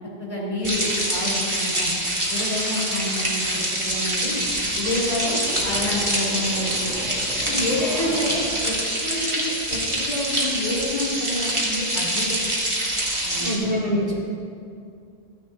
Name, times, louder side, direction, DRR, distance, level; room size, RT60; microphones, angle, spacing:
voice 1, 0.2-1.9 2.3-4.4 4.7-6.9 7.4-8.8 9.0-12.4 13.2-13.6 13.9-14.1, left 1 dB, 45° left, -6 dB, 3.0 m, -28 dB
sound 1, 0.6-13.6, right 1 dB, 30° right, 1.5 m, -25 dB
sound 2, 4.1-8.8, left 1 dB, 5° right, 1.2 m, -37 dB
voice 2, 13.4-14.1, equal, 85° right, -6 dB, 2.4 m, -24 dB
14.0 x 9.7 x 2.6 m, 2.4 s
omnidirectional pair, 1.1 m